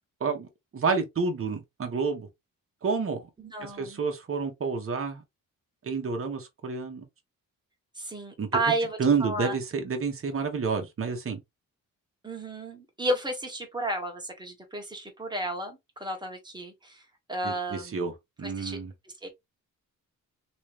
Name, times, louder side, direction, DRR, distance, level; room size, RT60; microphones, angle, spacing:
voice 1, 0.7-2.3 2.8-3.3 3.6-5.2 5.8-7.0 8.4-8.5 9.0-11.4 17.4-18.1 18.4-18.9, right 5 dB, 45° right, 1.2 m, -29 dB
voice 2, 3.4-4.0 7.9-9.6 12.2-17.0 17.3-18.1 18.4-18.8 19.2-19.3, right 2 dB, 15° right, 1.4 m, -32 dB
3.1 x 3.1 x 3.2 m
cardioid pair, 100°, 32 cm